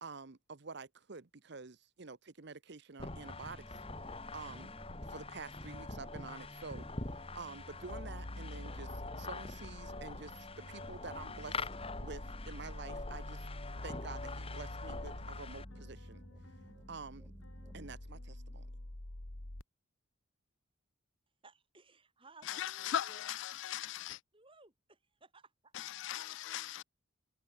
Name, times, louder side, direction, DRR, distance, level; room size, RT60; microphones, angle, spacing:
voice 1, 0.0-3.8 4.3-4.7 5.1-6.9 7.3-11.7 12.0-13.5 13.8-16.2 16.9-17.3 17.7-18.7, right 4 dB, 55° right, 0.9 m, -48 dB
sound 1, 3.0-15.6, left 3 dB, 30° left, 1.9 m, -45 dB
sound 2, 3.3-18.0, equal, 5° right, 1.2 m, -56 dB
sound 3, 7.9-19.6, left 1 dB, 85° left, 2.3 m, -47 dB
voice 2, 21.4-23.6 24.3-25.7, right 3 dB, 25° right, 3.1 m, -61 dB
voice 3, 22.6-24.2 25.8-26.8, left 11 dB, 60° left, 0.3 m, -38 dB
head